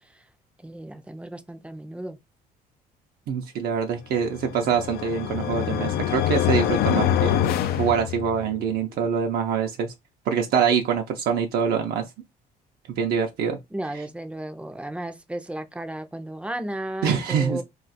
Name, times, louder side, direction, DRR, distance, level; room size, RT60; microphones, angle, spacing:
voice 1, 0.6-2.2 13.7-17.6, right 1 dB, 5° right, 0.5 m, -34 dB
voice 2, 3.3-7.4 7.7-9.9 10.3-12.1 12.9-13.6 17.0-17.6, right 7 dB, 65° right, 0.6 m, -24 dB
sound 1, 4.3-8.6, left 10 dB, 65° left, 0.4 m, -25 dB
2.4 x 2.4 x 4.0 m
cardioid pair, 110°, 17 cm